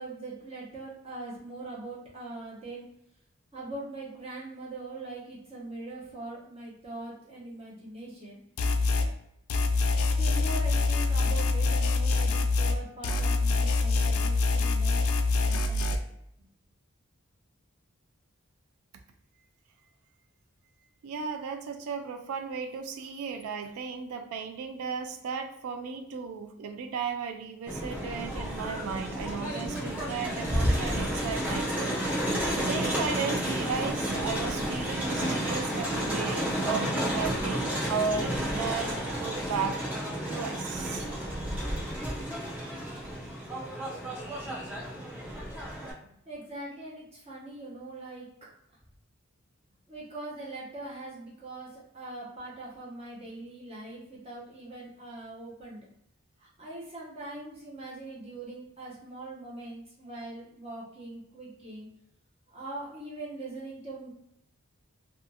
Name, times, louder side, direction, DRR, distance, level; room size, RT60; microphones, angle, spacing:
voice 1, 0.0-2.8 3.5-8.4 9.0-9.1 10.1-15.9 46.0-48.3 49.9-55.9 56.4-61.9 62.5-64.1, right 2 dB, 30° right, -6 dB, 0.8 m, -42 dB
sound 1, 8.6-9.1 9.5-12.8 13.0-16.0, left 3 dB, 75° left, 0.3 m, -25 dB
voice 2, 21.0-32.0 32.7-39.8 40.3-41.1, right 5 dB, 80° right, 5 dB, 0.3 m, -35 dB
Crowd, 27.7-45.9, equal, 5° right, 0.5 m, -31 dB
2.5 x 2.3 x 2.6 m, 0.77 s
head